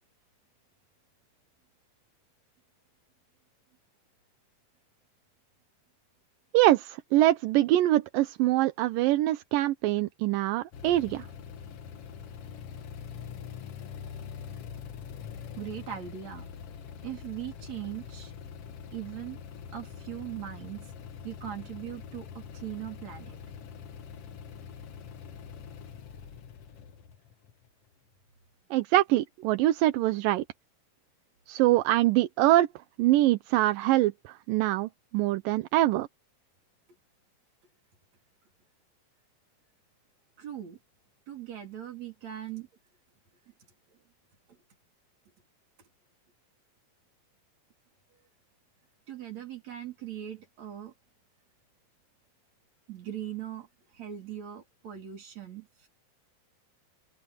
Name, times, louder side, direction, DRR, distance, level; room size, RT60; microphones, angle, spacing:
voice 1, 6.5-11.3 28.7-30.4 31.5-32.7 33.0-36.1, right 15 dB, 80° right, 2.5 m, -24 dB
sound 1, 10.7-27.9, left 7 dB, 55° left, 1.9 m, -44 dB
voice 2, 15.6-16.5 17.0-18.3 18.9-19.4 19.7-20.9 21.2-23.4 40.4-40.8 41.3-42.7 44.5-44.6 49.1-50.9 52.9-53.7 53.9-55.9, right 11 dB, 55° right, 4.6 m, -40 dB
open air
omnidirectional pair, 3.9 m